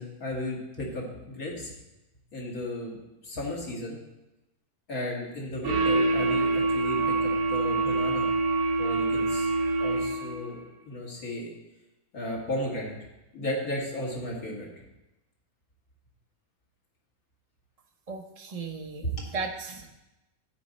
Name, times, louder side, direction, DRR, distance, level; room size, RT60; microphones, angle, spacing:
voice 1, 0.0-1.7 2.3-4.0 4.9-8.3 8.8-9.5 9.8-11.5 12.1-13.0 13.3-14.7 19.0-19.3, left 1 dB, 65° left, -3 dB, 2.4 m, -34 dB
sound 1, 5.6-10.5, right 3 dB, 75° right, 1.3 m, -25 dB
voice 2, 18.1-19.9, right 4 dB, 45° right, 2 dB, 0.4 m, -36 dB
9.3 x 7.8 x 4.2 m, 0.97 s
omnidirectional pair, 1.7 m